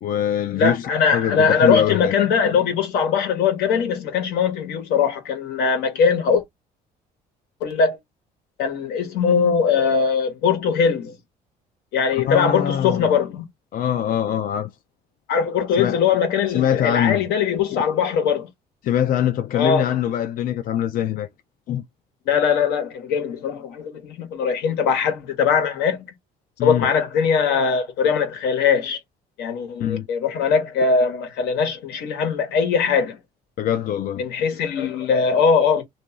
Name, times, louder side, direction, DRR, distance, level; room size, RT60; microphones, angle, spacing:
voice 1, 0.0-2.1 12.2-13.1 13.7-14.7 15.8-16.2 16.5-17.2 18.8-21.3 21.7-21.8 26.6-26.9 29.8-30.1 33.6-34.2, left 10 dB, 55° left, 0.4 m, -23 dB
voice 2, 0.5-6.4 7.6-8.0 8.6-11.2 11.9-13.5 15.3-18.5 19.5-19.9 22.3-26.0 26.6-29.0 29.4-33.2 34.2-35.8, left 6 dB, 85° left, 1.2 m, -21 dB
2.9 x 2.6 x 3.5 m
cardioid pair, 110°, 17 cm